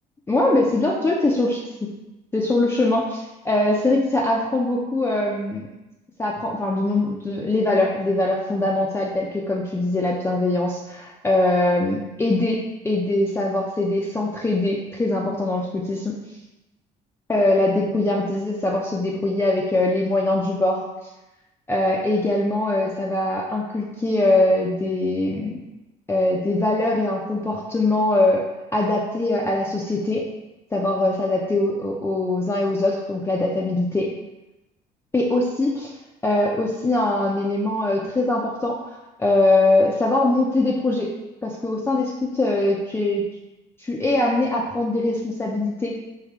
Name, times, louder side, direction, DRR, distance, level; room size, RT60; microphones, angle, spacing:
voice 1, 0.3-1.9 2.3-3.0 3.4-5.7 6.2-16.2 17.3-20.9 21.7-25.6 26.1-28.5 28.7-30.3 30.7-34.1 35.1-35.9 36.2-41.1 41.4-43.2 43.8-45.9, left 2 dB, 15° left, -3 dB, 0.5 m, -22 dB
4.9 x 2.7 x 3.5 m, 0.98 s
cardioid pair, 110°, 17 cm